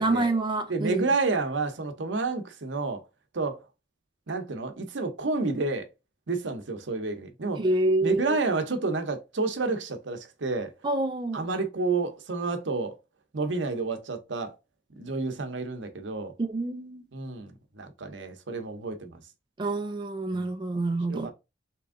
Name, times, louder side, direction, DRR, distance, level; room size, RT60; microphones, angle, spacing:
voice 1, 0.0-1.1 7.6-8.4 10.8-11.4 16.4-17.0 19.6-21.3, right 2 dB, 25° right, 0.4 m, -27 dB
voice 2, 0.7-3.0 3.3-3.6 4.3-5.9 6.3-7.6 8.0-10.7 11.3-13.0 13.3-14.6 15.0-16.3 17.1-19.2 20.3-20.5 21.1-21.3, right 3 dB, 80° right, 0.8 m, -30 dB
3.5 x 3.0 x 3.6 m
head